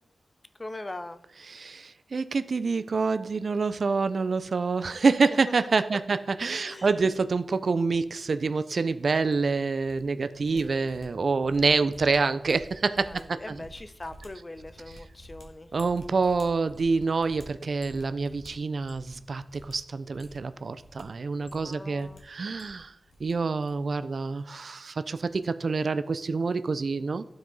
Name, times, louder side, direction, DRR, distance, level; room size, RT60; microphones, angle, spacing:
voice 1, 0.6-1.2 6.7-6.9 10.5-10.9 13.1-15.7 21.6-22.2, left 2 dB, 25° left, 0.5 m, -41 dB
voice 2, 1.5-13.6 15.7-22.9 23.2-27.3, right 4 dB, 65° right, 0.4 m, -27 dB
sound 1, 9.3-10.0 10.3-19.2 19.5-19.7 20.0-21.0 21.3-22.2 22.4-23.3 23.6-23.9 24.2-24.4, equal, 85° left, 1.4 m, -51 dB
12.0 x 4.8 x 3.9 m
wide cardioid pair, 80°, 0 cm